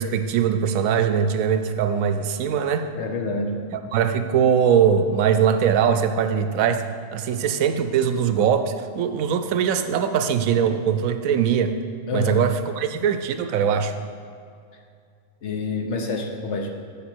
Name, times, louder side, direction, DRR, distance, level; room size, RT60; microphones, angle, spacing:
voice 1, 0.0-2.9 3.7-6.8 7.1-11.7 12.1-14.0, right 7 dB, 75° right, 8 dB, 1.0 m, -21 dB
voice 2, 2.9-3.6 12.1-12.4 15.4-16.7, left 3 dB, 55° left, 3 dB, 1.1 m, -27 dB
9.3 x 7.3 x 4.4 m, 2.3 s
omnidirectional pair, 1.5 m